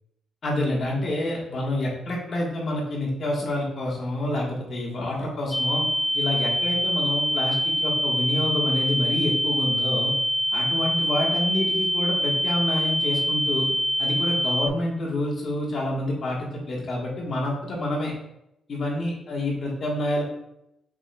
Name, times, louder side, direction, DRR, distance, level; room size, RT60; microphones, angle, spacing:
voice 1, 0.4-5.9 6.1-10.1 10.5-13.7 14.0-18.1 18.7-20.2, left 1 dB, 45° left, -2 dB, 1.3 m, -28 dB
sound 1, 5.5-14.7, equal, 10° left, 0.3 m, -25 dB
6.0 x 3.7 x 2.2 m, 0.81 s
cardioid pair, 130°, 0 cm